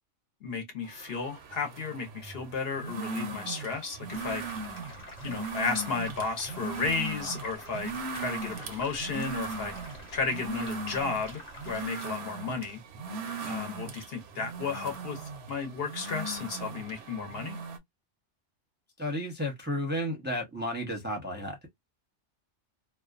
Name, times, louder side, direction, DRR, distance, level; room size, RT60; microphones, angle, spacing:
voice 1, 0.4-4.4 5.2-9.7 10.1-12.8 13.5-17.6, left 4 dB, 60° left, 0.9 m, -33 dB
sound 1, 0.9-17.8, right 3 dB, 70° right, 0.8 m, -39 dB
sound 2, 4.1-11.9, left 1 dB, 40° left, 1.1 m, -47 dB
voice 2, 19.0-21.7, equal, 10° right, 0.6 m, -32 dB
2.4 x 2.2 x 2.3 m
omnidirectional pair, 1.2 m